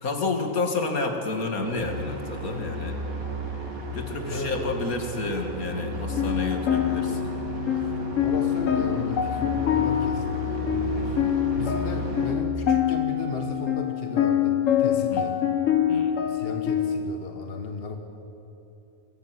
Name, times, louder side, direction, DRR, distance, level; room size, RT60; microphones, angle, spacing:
voice 1, 0.0-3.0 3.9-7.3 15.1-15.3 15.9-16.1, left 3 dB, 90° left, 4 dB, 2.7 m, -30 dB
sound 1, 1.6-12.3, right 1 dB, 80° right, 3.1 m, -33 dB
voice 2, 4.3-4.8 8.2-15.4 16.3-18.0, left 3 dB, 45° left, 5 dB, 1.7 m, -35 dB
sound 2, 6.1-17.0, left 10 dB, 65° left, 1.4 m, -25 dB
23.5 x 16.0 x 9.4 m, 3.0 s
omnidirectional pair, 1.5 m